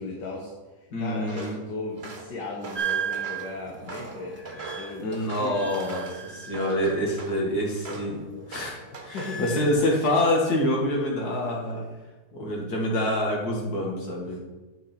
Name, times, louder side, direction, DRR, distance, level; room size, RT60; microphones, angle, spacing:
voice 1, 0.0-6.0 8.9-9.6 11.7-11.9, left 3 dB, 85° left, -1 dB, 1.8 m, -37 dB
voice 2, 0.9-1.6 5.0-8.2 8.5-8.8 9.0-11.8 12.3-14.4, left 1 dB, 65° left, -2 dB, 2.4 m, -26 dB
Walk footsteps, 1.2-1.6 2.0-3.5 3.9-6.2 6.5-7.4 7.8-8.1 8.5-9.4 9.7-10.2, right 3 dB, 40° right, 1.3 m, -40 dB
sound 1, 2.7-7.5 7.8-9.7, right 7 dB, 10° right, 0.6 m, -36 dB
8.3 x 6.8 x 4.4 m, 1.2 s
omnidirectional pair, 1.8 m